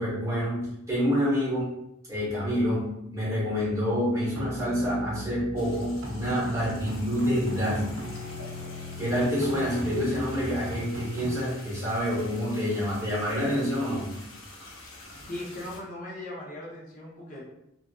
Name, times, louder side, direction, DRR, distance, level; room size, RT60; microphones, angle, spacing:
voice 1, 0.0-1.7 2.1-8.0 9.0-14.1, equal, 15° right, -7 dB, 0.9 m, -27 dB
sound 1, 4.3-11.3, equal, 75° right, 0.5 m, -38 dB
sound 2, 5.6-15.8, left 2 dB, 85° left, 0.6 m, -47 dB
voice 2, 15.3-17.4, left 1 dB, 40° left, -6 dB, 0.6 m, -38 dB
2.4 x 2.3 x 2.3 m, 0.83 s
head